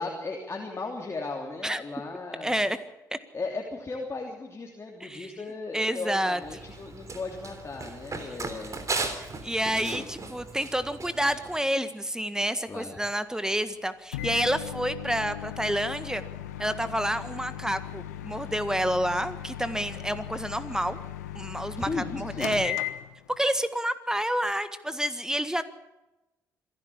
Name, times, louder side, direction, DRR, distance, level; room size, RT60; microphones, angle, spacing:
voice 1, 0.0-2.5 3.3-8.9 9.7-10.1 12.7-13.0 21.8-22.5, left 3 dB, 30° left, 0 dB, 3.1 m, -36 dB
voice 2, 2.4-2.8 3.1-3.2 5.0-5.3 5.7-6.4 9.4-16.2 16.6-21.0 21.3-22.8 23.3-25.6, equal, 5° right, 12 dB, 1.7 m, -29 dB
Run, 6.4-11.6, right 3 dB, 40° right, 3.3 m, -37 dB
Microwave oven, 14.1-23.5, left 12 dB, 85° left, 0.9 m, -37 dB
26.0 x 12.0 x 8.6 m, 1.0 s
hypercardioid pair, 45°, 9 cm